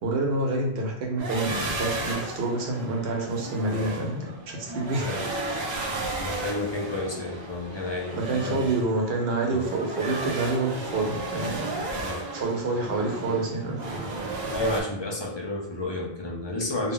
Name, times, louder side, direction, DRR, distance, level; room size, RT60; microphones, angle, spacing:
voice 1, 0.0-5.1 5.5-5.8 8.1-11.6 12.3-13.8, right 2 dB, 75° right, 0 dB, 0.9 m, -28 dB
sound 1, 1.2-14.8, right 2 dB, 55° right, 0.6 m, -34 dB
voice 2, 6.2-8.7 9.5-9.7 11.9-12.2 14.5-16.9, left 2 dB, 40° left, -1 dB, 0.4 m, -31 dB
2.1 x 2.1 x 3.7 m, 0.89 s
omnidirectional pair, 1.0 m